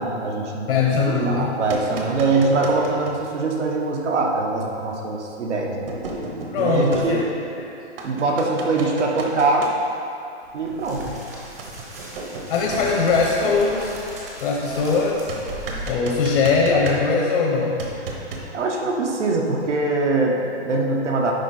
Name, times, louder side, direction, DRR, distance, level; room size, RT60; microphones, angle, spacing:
voice 1, 0.0-0.7 1.0-5.9 6.6-7.2 8.0-9.7 10.5-11.1 18.5-21.3, right 3 dB, 90° right, 0 dB, 1.4 m, -22 dB
voice 2, 0.7-1.5 6.5-7.2 12.5-14.0 14.4-15.3 15.9-17.8, left 4 dB, 50° left, -2 dB, 1.1 m, -21 dB
sound 1, 1.4-3.2 4.6-4.7 5.9-7.6 8.0-9.7 11.6-13.3 15.3-17.4 17.8-18.5, right 2 dB, 55° right, 1.1 m, -33 dB
sound 2, 10.4-15.9, right 1 dB, 15° right, 0.4 m, -37 dB
10.5 x 3.9 x 4.4 m, 2.7 s
hypercardioid pair, 165°, 35 cm